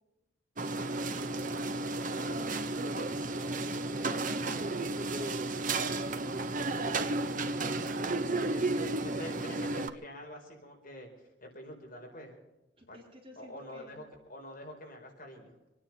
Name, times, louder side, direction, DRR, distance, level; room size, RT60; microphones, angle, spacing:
voice 1, 0.6-8.5 12.8-14.1, equal, 30° right, 0 dB, 4.3 m, -53 dB
sound 1, 0.6-9.9, right 2 dB, 45° right, 1.2 m, -33 dB
voice 2, 7.8-8.6 9.0-12.3 12.9-13.0 13.4-14.0 14.3-15.5, equal, 50° left, 1 dB, 4.5 m, -46 dB
26.0 x 9.9 x 5.5 m, 1.0 s
head